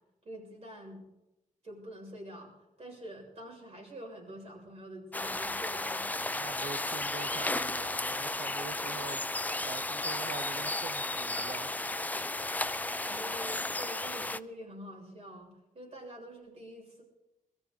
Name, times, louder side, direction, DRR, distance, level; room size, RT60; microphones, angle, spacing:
voice 1, 0.2-1.0 1.6-6.5 12.6-17.0, equal, 50° right, -1 dB, 6.9 m, -46 dB
sound 1, 5.1-14.4, left 2 dB, 10° left, 0.4 m, -34 dB
voice 2, 6.3-11.8, right 6 dB, 80° right, 9 dB, 0.7 m, -45 dB
22.5 x 14.0 x 4.0 m, 0.92 s
wide cardioid pair, 100°, 14 cm